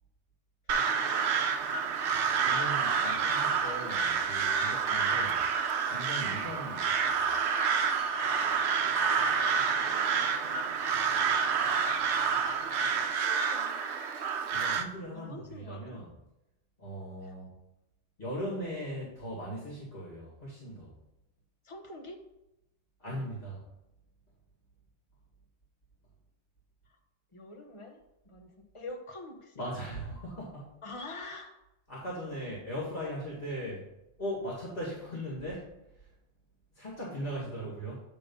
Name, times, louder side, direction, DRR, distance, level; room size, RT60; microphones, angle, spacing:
voice 1, 0.7-1.3 9.8-10.8 13.0-13.8 14.6-14.7 15.1-16.0 17.2-17.3 21.6-22.2 26.9-27.0 27.3-29.6 30.8-31.6, left 2 dB, 30° left, 4 dB, 0.9 m, -46 dB
Crow, 0.7-14.9, right 6 dB, 75° right, 0.9 m, -28 dB
voice 2, 2.4-5.4 5.9-7.3 14.5-16.1 16.8-17.5 18.2-20.9 23.0-23.6 29.6-30.7 31.9-33.8 34.2-36.1 36.7-38.0, equal, 50° left, -5 dB, 2.2 m, -39 dB
8.6 x 3.7 x 5.3 m, 0.90 s
omnidirectional pair, 1.2 m